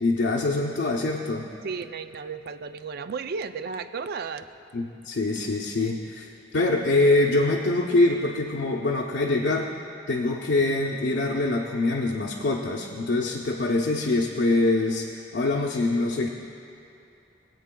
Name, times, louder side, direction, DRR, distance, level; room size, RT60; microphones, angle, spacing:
voice 1, 0.0-1.5 4.7-6.3 6.5-9.7 10.1-16.3, left 2 dB, 75° left, -2 dB, 0.6 m, -24 dB
voice 2, 1.6-4.5, right 5 dB, 55° right, 11 dB, 0.4 m, -33 dB
21.0 x 8.3 x 2.3 m, 2.6 s
head